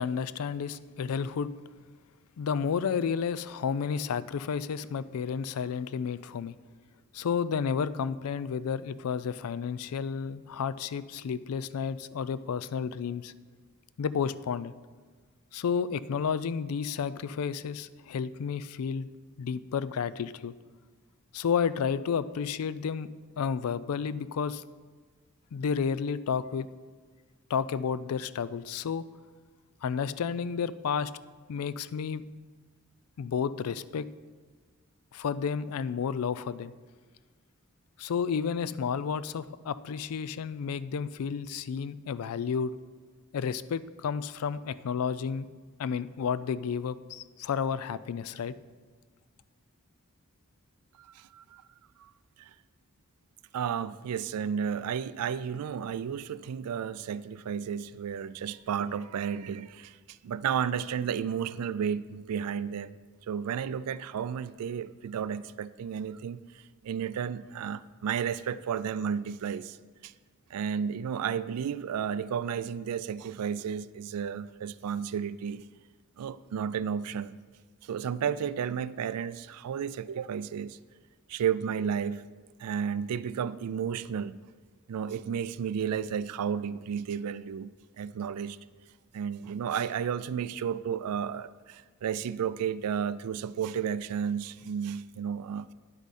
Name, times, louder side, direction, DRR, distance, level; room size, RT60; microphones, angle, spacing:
voice 1, 0.0-1.5 2.4-6.5 7.1-13.3 14.0-14.7 15.5-19.1 19.4-20.5 21.3-23.1 23.4-24.6 25.5-26.7 27.5-29.0 29.8-31.1 31.5-32.2 33.2-34.1 35.1-36.7 38.0-42.7 43.3-45.5 45.8-48.5, left 6 dB, 70° left, 16 dB, 0.4 m, -31 dB
voice 2, 51.0-51.6 52.0-52.1 52.4-52.5 53.5-63.0 63.3-69.8 70.0-70.1 70.5-75.6 76.2-77.4 77.8-80.8 81.3-82.2 82.6-84.4 84.9-88.6 89.1-95.7, right 7 dB, 90° right, 16 dB, 0.3 m, -32 dB
9.8 x 8.1 x 4.2 m, 1.4 s
head